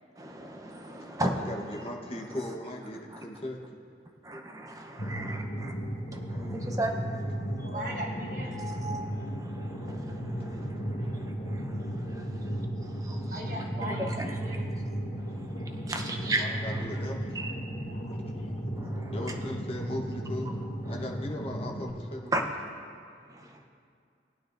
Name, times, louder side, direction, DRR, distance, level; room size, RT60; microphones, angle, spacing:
voice 1, 0.2-1.5 3.1-3.2 4.2-5.7 6.3-7.8 8.5-13.4 13.9-14.6 15.2-16.8 17.3-17.5 18.8-19.4 20.9-21.0 22.3-22.4 23.3-23.7, right 1 dB, 20° right, 3 dB, 0.8 m, -36 dB
voice 2, 1.0-3.8 6.6-6.7 11.0-11.6 16.2-17.4 18.0-18.5 19.1-20.5 20.8-22.5, left 1 dB, 30° left, 0 dB, 1.0 m, -39 dB
sound 1, 5.0-21.9, equal, 75° left, 1.9 m, -35 dB
voice 3, 7.6-8.6 13.3-14.7 17.8-18.1, right 1 dB, 45° right, -2 dB, 1.3 m, -39 dB
19.5 x 9.4 x 2.6 m, 2.3 s
head